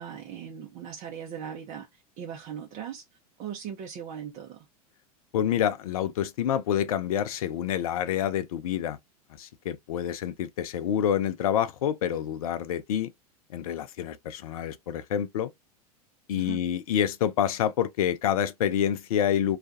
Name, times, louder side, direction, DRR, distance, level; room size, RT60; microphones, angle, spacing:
voice 1, 0.0-3.0 3.4-4.7 16.4-16.6, right 8 dB, 40° right, 0.7 m, -39 dB
voice 2, 5.3-9.0 9.4-13.1 13.5-15.5 16.3-19.6, left 10 dB, 65° left, 0.5 m, -27 dB
2.4 x 2.2 x 2.5 m
figure-of-eight pair, 90°, 20 cm